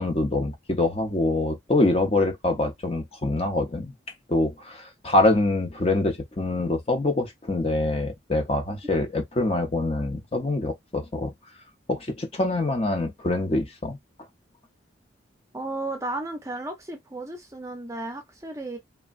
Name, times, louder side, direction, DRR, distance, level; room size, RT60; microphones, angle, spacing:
voice 1, 0.0-3.9 4.3-11.3 11.9-14.0, left 2 dB, 30° left, 0.6 m, -25 dB
voice 2, 15.5-18.8, right 2 dB, 15° right, 0.5 m, -34 dB
3.3 x 2.1 x 2.4 m
head